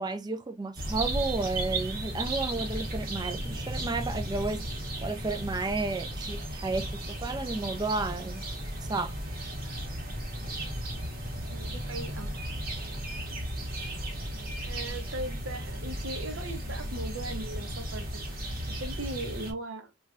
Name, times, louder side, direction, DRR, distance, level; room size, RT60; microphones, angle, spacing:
voice 1, 0.0-4.6 5.0-8.4 8.9-9.1, right 3 dB, 20° right, 0.4 m, -32 dB
sound 1, 0.8-19.5, right 1 dB, 50° right, 1.0 m, -35 dB
voice 2, 11.5-12.3 14.6-18.2 18.7-19.9, right 1 dB, 75° right, 0.7 m, -38 dB
3.1 x 2.4 x 2.4 m
head